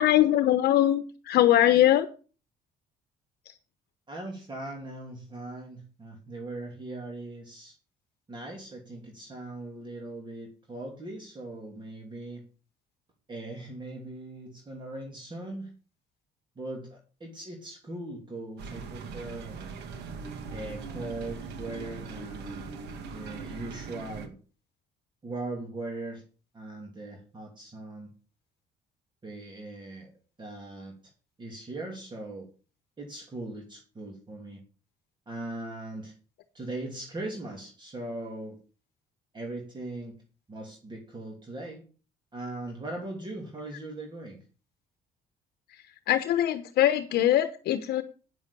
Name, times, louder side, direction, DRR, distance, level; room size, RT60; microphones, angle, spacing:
voice 1, 0.0-2.1 46.1-48.0, left 12 dB, 70° left, 11 dB, 1.0 m, -22 dB
voice 2, 4.1-7.8 8.3-12.4 13.3-15.7 16.6-19.7 20.5-22.7 23.0-24.3 25.2-26.2 26.5-28.1 29.2-30.1 30.4-31.0 31.4-32.5 33.0-34.6 35.3-36.1 36.5-38.6 39.3-40.1 40.5-41.8 42.3-44.4, right 2 dB, 25° right, 1 dB, 2.7 m, -39 dB
sound 1, 18.6-24.3, right 5 dB, 80° right, 1.9 m, -40 dB
9.3 x 7.1 x 6.9 m, 0.36 s
cardioid pair, 110°, 17 cm